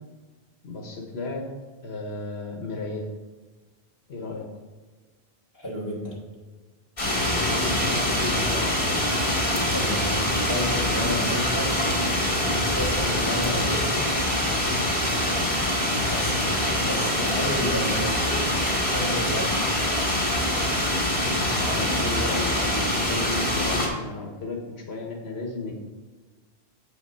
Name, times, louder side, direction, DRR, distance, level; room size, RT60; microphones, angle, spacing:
voice 1, 0.6-1.4 1.8-3.1 4.1-4.5 7.3-8.7 21.5-25.7, left 3 dB, 80° left, 1 dB, 1.3 m, -33 dB
voice 2, 5.5-6.2 9.6-11.7 12.4-14.1 16.1-18.4 18.9-19.7, equal, 15° left, -5 dB, 3.0 m, -31 dB
sound 1, 7.0-23.9, left 1 dB, 60° left, 2.7 m, -24 dB
7.4 x 5.8 x 5.5 m, 1.3 s
omnidirectional pair, 1.1 m